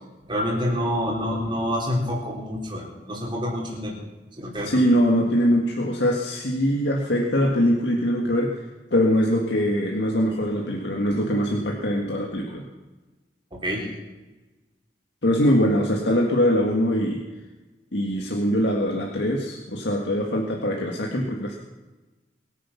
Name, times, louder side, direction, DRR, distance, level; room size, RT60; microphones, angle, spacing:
voice 1, 0.2-3.9 4.4-4.8 13.5-13.9, equal, 30° right, -3 dB, 4.3 m, -27 dB
voice 2, 4.6-8.6 8.9-12.7 15.2-17.2 17.9-21.6, equal, 85° left, 0 dB, 1.9 m, -22 dB
23.0 x 10.0 x 5.9 m, 1.1 s
head